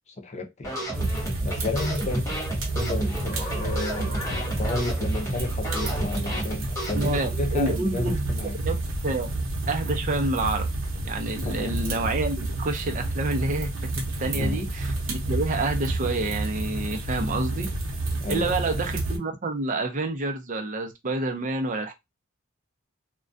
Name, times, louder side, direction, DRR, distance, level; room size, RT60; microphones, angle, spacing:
voice 1, 0.1-0.7 1.1-2.3 2.7-8.5 11.4-11.8 14.3-14.6 18.2-18.7, left 2 dB, 35° left, 0.5 m, -32 dB
sound 1, 0.6-7.3, right 1 dB, 15° left, 0.9 m, -32 dB
sound 2, 0.9-19.2, right 2 dB, 85° right, 0.8 m, -30 dB
voice 2, 7.0-8.2 8.6-8.7 9.0-9.3 9.7-10.7 11.0-13.9 14.2-17.7 18.3-21.9, right 2 dB, 40° right, 0.5 m, -28 dB
2.3 x 2.2 x 2.6 m
head